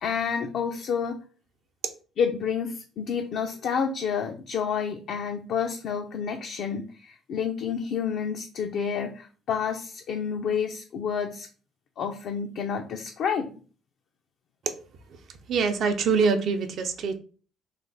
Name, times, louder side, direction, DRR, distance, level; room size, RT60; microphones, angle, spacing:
voice 1, 0.0-1.2 2.2-11.5 12.0-13.5, left 7 dB, 65° left, 3 dB, 0.4 m, -29 dB
voice 2, 15.5-17.2, right 5 dB, 60° right, 7 dB, 0.5 m, -24 dB
3.3 x 2.1 x 3.7 m, 0.38 s
cardioid pair, 90°, 0 cm